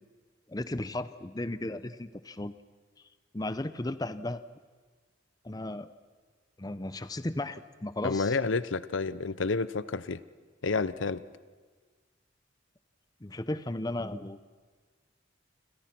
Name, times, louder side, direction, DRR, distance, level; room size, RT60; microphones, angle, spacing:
voice 1, 0.5-2.5 3.3-4.4 5.4-5.9 6.6-8.4 13.2-14.4, left 1 dB, 20° left, 13 dB, 0.7 m, -35 dB
voice 2, 8.0-10.2 10.6-11.2, left 4 dB, 75° left, 16 dB, 0.8 m, -29 dB
28.5 x 26.5 x 6.0 m, 1.5 s
head